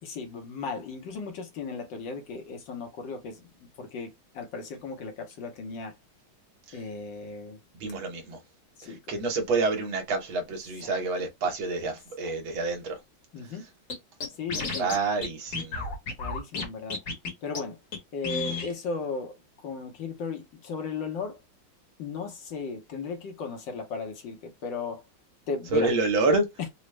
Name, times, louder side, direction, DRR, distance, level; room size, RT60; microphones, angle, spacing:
voice 1, 0.0-5.9 6.7-7.6 8.8-9.0 10.8-10.9 12.2-12.3 13.3-13.6 14.3-14.9 16.2-17.0 17.4-17.8 18.1-19.4 19.6-21.4 22.0-25.0 25.5-25.9, left 4 dB, 70° left, 1.5 m, -36 dB
voice 2, 7.7-8.4 8.8-13.0 14.8-15.9 25.7-26.5, right 3 dB, 70° right, 1.7 m, -28 dB
Scratching (performance technique), 13.9-14.0 14.2-15.0 15.2-15.3 15.5-16.6 16.9-17.3 17.5-17.6 17.9-18.0 18.2-18.7, left 4 dB, 50° left, 1.4 m, -31 dB
4.0 x 2.2 x 3.2 m
omnidirectional pair, 2.3 m